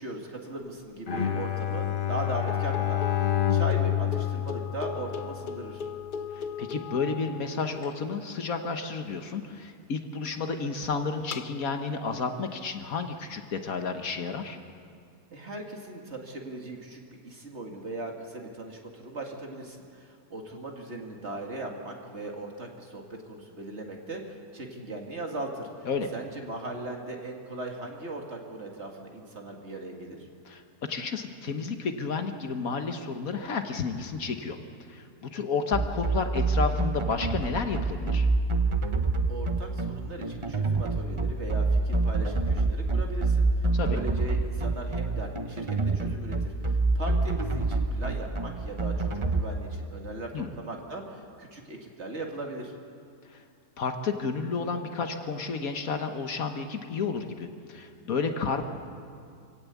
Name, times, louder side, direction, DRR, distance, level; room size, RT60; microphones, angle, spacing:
voice 1, 0.0-5.8 15.3-30.2 39.3-52.7, right 2 dB, 45° right, 1 dB, 2.4 m, -39 dB
Bowed string instrument, 1.1-5.5, left 10 dB, 35° left, 1.1 m, -28 dB
sound 1, 2.3-8.0 10.3-10.4 11.3-11.6, left 7 dB, 90° left, 0.4 m, -38 dB
voice 2, 6.3-14.6 25.8-26.1 30.4-34.6 34.9-38.3 43.7-44.0 50.3-50.5 53.3-53.4 53.8-58.6, left 5 dB, 60° left, 6 dB, 1.5 m, -31 dB
sound 2, 35.7-49.4, right 3 dB, 25° right, 0.7 m, -26 dB
24.5 x 16.5 x 8.3 m, 2.3 s
omnidirectional pair, 1.7 m